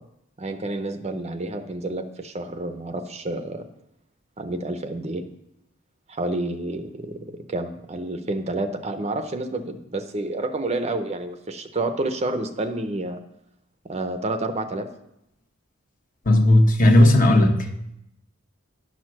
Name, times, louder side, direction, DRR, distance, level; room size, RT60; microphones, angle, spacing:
voice 1, 0.4-3.7 4.4-5.3 6.1-13.2 13.8-14.9, right 2 dB, 30° right, 8 dB, 0.7 m, -29 dB
voice 2, 16.3-17.7, left 1 dB, 40° left, 4 dB, 1.1 m, -15 dB
10.5 x 6.5 x 6.1 m, 0.82 s
head